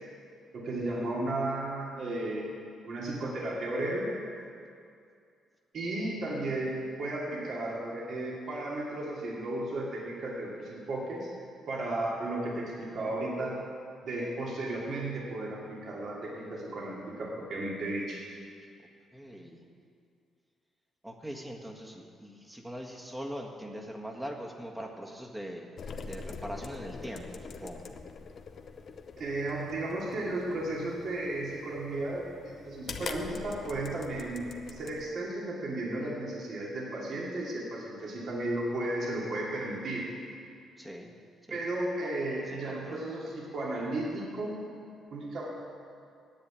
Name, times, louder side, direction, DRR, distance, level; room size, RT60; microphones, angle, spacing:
voice 1, 0.5-2.5 2.8-4.1 5.7-11.3 11.7-13.6 14.0-18.3 29.2-40.1 41.5-44.7 45.1-45.5, right 2 dB, 60° right, -4 dB, 2.5 m, -34 dB
voice 2, 19.1-19.6 21.0-25.7 26.0-27.9 40.8-41.1 41.5-41.6 42.0-43.0, equal, 10° right, 1 dB, 1.6 m, -42 dB
sound 1, 25.8-35.1, left 5 dB, 55° left, 0.8 m, -44 dB
10.5 x 7.9 x 8.9 m, 2.4 s
cardioid pair, 90°, 0 cm